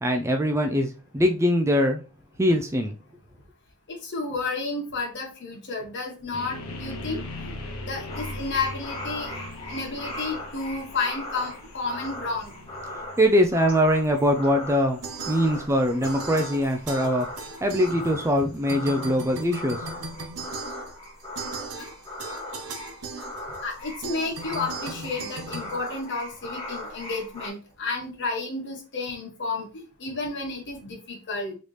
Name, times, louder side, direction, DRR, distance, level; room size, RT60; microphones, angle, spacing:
voice 1, 0.0-2.0 2.4-3.0 13.2-15.0 15.3-17.3 17.6-19.9, equal, 10° right, 0.4 m, -22 dB
voice 2, 3.9-9.4 9.7-12.5 23.6-31.5, left 3 dB, 55° left, 1.3 m, -31 dB
sound 1, 6.3-18.3, left 2 dB, 75° left, 1.0 m, -41 dB
sound 2, 8.1-27.5, left 1 dB, 25° left, 1.5 m, -39 dB
sound 3, 15.0-15.8 16.0-18.4 18.7-26.5, right 4 dB, 75° right, 0.8 m, -38 dB
4.1 x 3.2 x 3.2 m
head